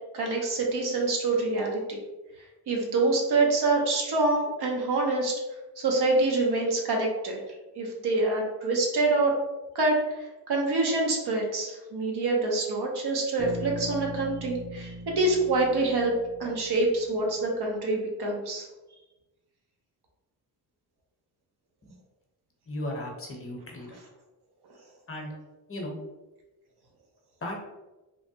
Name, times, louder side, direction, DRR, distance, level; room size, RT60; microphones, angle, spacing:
voice 1, 0.1-2.0 2.7-5.3 5.8-7.4 7.8-9.4 9.7-16.1 16.4-18.7, right 2 dB, 65° right, 0 dB, 0.9 m, -26 dB
Bass guitar, 13.4-17.3, equal, 10° right, 0.7 m, -40 dB
voice 2, 22.7-24.0 25.1-25.3 25.7-25.9 27.4-27.6, left 1 dB, 30° left, 0 dB, 0.8 m, -35 dB
3.2 x 2.1 x 2.7 m, 1.1 s
cardioid pair, 70°, 42 cm